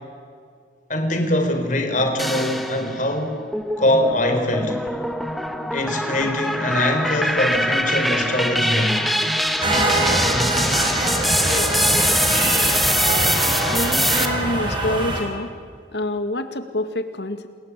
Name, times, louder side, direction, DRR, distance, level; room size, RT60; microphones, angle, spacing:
voice 1, 0.9-3.4 3.8-4.8 5.7-9.0, left 1 dB, 45° left, 5 dB, 4.3 m, -22 dB
sound 1, 2.2-3.0 3.5-14.2, equal, ahead, 1.6 m, -23 dB
sound 2, 9.6-15.2, right 1 dB, 30° right, 6.0 m, -23 dB
voice 2, 13.7-15.5 15.9-17.5, left 1 dB, 75° left, 9 dB, 2.2 m, -26 dB
28.5 x 21.5 x 8.4 m, 2.1 s
head